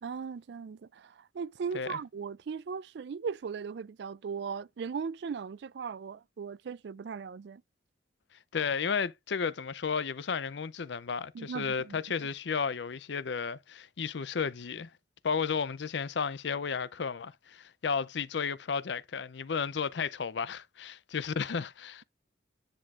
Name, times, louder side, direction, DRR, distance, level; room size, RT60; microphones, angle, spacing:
voice 1, 0.0-7.6 11.3-12.0, right 6 dB, 60° right, 0.4 m, -38 dB
voice 2, 8.5-14.9 15.2-22.0, left 6 dB, 65° left, 0.5 m, -33 dB
9.9 x 6.1 x 2.5 m
head